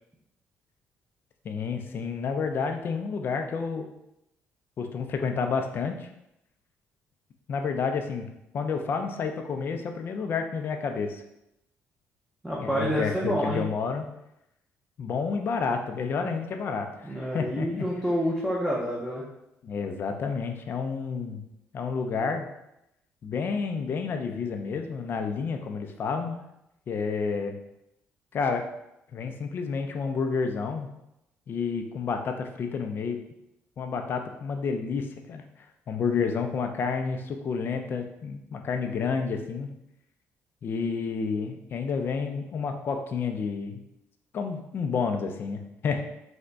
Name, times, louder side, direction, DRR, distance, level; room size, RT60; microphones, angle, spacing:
voice 1, 1.4-3.9 4.8-6.1 7.5-8.3 8.5-11.2 12.6-14.0 15.0-17.9 19.6-21.4 21.7-22.5 23.2-26.4 26.9-27.6 28.3-28.7 29.1-30.9 31.5-33.2 33.8-35.4 35.9-39.7 40.6-43.8 44.3-46.0, left 5 dB, 45° left, 5 dB, 0.4 m, -30 dB
voice 2, 12.4-13.6 17.0-19.3, equal, 5° right, -5 dB, 0.6 m, -28 dB
3.4 x 2.1 x 3.8 m, 0.85 s
cardioid pair, 130°, 5 cm